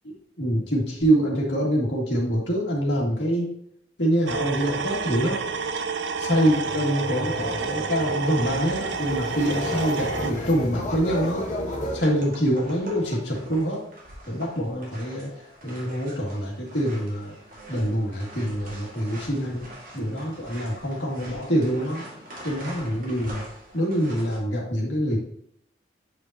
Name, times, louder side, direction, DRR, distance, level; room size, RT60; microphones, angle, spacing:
voice 1, 0.4-3.5 4.0-5.4 6.2-11.4 11.9-13.8 14.3-15.3 15.6-17.3 17.7-19.7 19.9-22.0 22.4-23.4 23.7-25.2, equal, 75° left, -2 dB, 2.3 m, -25 dB
sound 1, 4.3-10.3, right 5 dB, 75° right, 0.5 m, -29 dB
sound 2, 6.3-12.0, left 1 dB, 40° left, 1.3 m, -33 dB
sound 3, 7.5-24.4, right 1 dB, 50° right, 1.9 m, -45 dB
8.1 x 5.2 x 2.8 m, 0.71 s
head